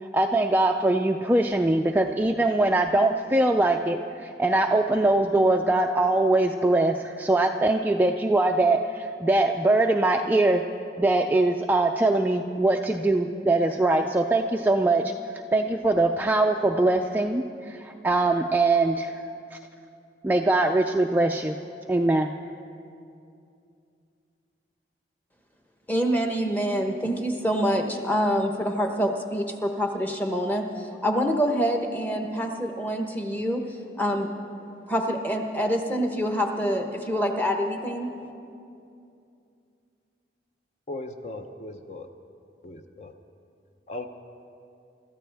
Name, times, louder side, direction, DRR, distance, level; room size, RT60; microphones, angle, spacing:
voice 1, 0.0-10.6 11.0-15.1 15.5-19.1 19.5-19.6 20.2-21.6 21.9-22.3, right 2 dB, 10° right, 3 dB, 0.3 m, -22 dB
voice 2, 25.9-33.6 34.0-34.3 34.9-38.1, equal, 10° left, 3 dB, 1.0 m, -26 dB
voice 3, 40.9-42.1 42.6-43.1 43.9-44.1, left 2 dB, 35° left, 6 dB, 0.6 m, -37 dB
25.5 x 13.5 x 3.5 m, 2.5 s
head